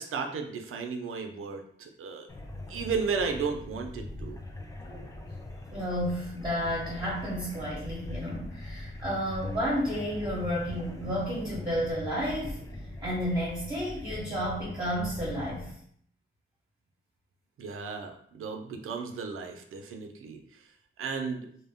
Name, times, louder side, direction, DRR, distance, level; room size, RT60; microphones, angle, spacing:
voice 1, 0.0-2.3 2.7-4.4 4.9-5.1 17.6-20.4 21.0-21.5, right 5 dB, 85° right, 4 dB, 0.4 m, -34 dB
sound 1, 2.3-15.7, left 1 dB, 15° left, 0.3 m, -41 dB
voice 2, 5.7-12.6 13.0-15.7, equal, 20° right, -9 dB, 0.9 m, -31 dB
2.1 x 2.1 x 3.4 m, 0.62 s
wide cardioid pair, 110°, 21 cm